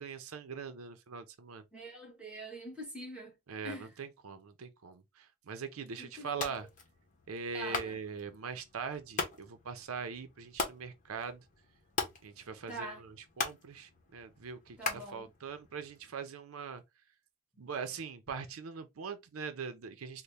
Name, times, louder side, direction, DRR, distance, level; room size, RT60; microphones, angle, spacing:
voice 1, 0.0-1.6 3.5-6.7 7.3-11.4 12.2-14.8 15.1-16.8 17.6-20.2, right 5 dB, 85° right, 0.5 m, -42 dB
voice 2, 1.7-3.3 3.6-3.9 6.0-6.3 7.5-8.0 12.7-13.0 14.8-15.3, right 1 dB, 5° right, 1.5 m, -44 dB
sound 1, 6.3-16.0, left 4 dB, 40° left, 1.0 m, -41 dB
4.0 x 2.1 x 3.3 m
head